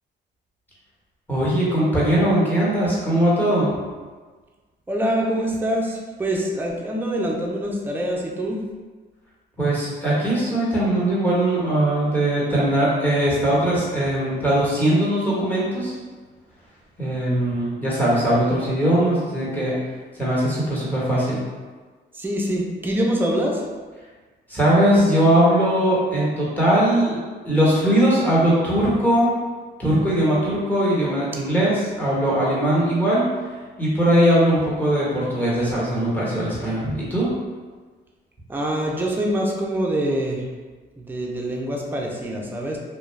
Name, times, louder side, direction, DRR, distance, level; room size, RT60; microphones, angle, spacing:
voice 1, 1.3-3.7 9.6-15.9 17.0-19.8 20.1-21.4 24.5-27.2 27.4-29.3 29.8-33.2 33.8-37.3, right 1 dB, 10° left, -8 dB, 1.2 m, -20 dB
voice 2, 4.9-8.6 18.2-18.3 22.1-23.6 38.5-40.4 41.0-42.8, right 1 dB, 10° right, -1 dB, 0.5 m, -25 dB
2.3 x 2.2 x 3.2 m, 1.4 s
cardioid pair, 90°, 20 cm